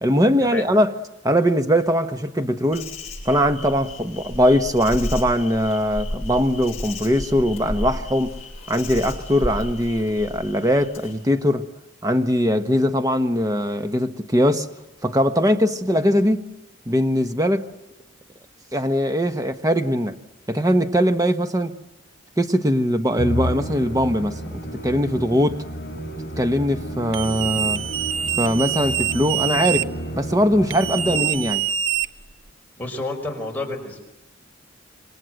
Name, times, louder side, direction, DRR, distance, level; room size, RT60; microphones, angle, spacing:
voice 1, 0.0-0.9 1.2-2.9 3.2-8.4 8.7-11.6 12.0-14.7 15.0-16.4 16.9-17.7 18.7-20.1 20.5-21.7 22.4-25.6 26.4-27.8 28.4-29.9 30.1-31.7, equal, 15° right, 1.2 m, -21 dB
Insect, 2.7-11.1, left 1 dB, 30° left, 7.7 m, -33 dB
Musical instrument, 23.2-31.7, equal, 50° left, 6.6 m, -31 dB
sound 1, 27.1-29.8 30.7-32.5, right 9 dB, 70° right, 0.9 m, -25 dB
voice 2, 32.8-34.0, left 2 dB, 10° left, 4.9 m, -30 dB
27.5 x 24.0 x 7.8 m
head